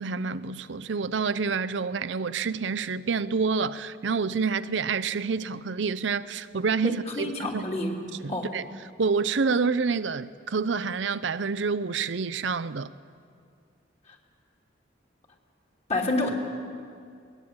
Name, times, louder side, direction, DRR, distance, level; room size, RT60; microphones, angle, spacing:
voice 1, 0.0-7.7 8.2-8.7 9.0-12.9, right 5 dB, 70° right, 0.6 m, -28 dB
voice 2, 6.8-8.0 8.3-8.5 15.9-16.3, left 2 dB, 35° left, 3.3 m, -28 dB
21.0 x 20.0 x 8.8 m
head